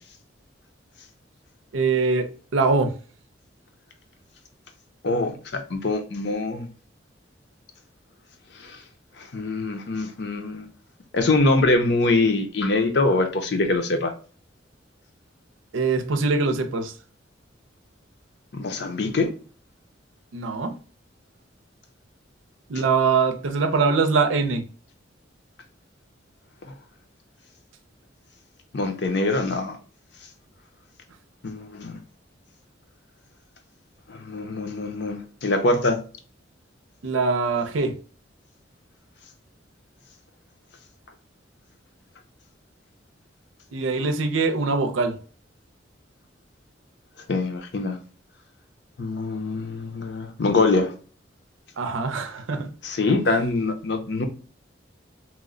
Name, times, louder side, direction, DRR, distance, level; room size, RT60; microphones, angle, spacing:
voice 1, 1.7-2.9 15.7-16.9 20.3-20.8 22.7-24.6 37.0-38.0 43.7-45.2 51.8-52.7, right 4 dB, 90° right, 0.5 m, -23 dB
voice 2, 5.0-6.7 8.6-8.8 9.2-10.7 11.1-14.1 18.5-19.3 28.7-29.8 31.4-32.0 34.1-36.0 47.3-48.0 49.0-50.9 52.8-54.3, left 2 dB, 60° left, 0.5 m, -24 dB
3.0 x 2.1 x 3.7 m
head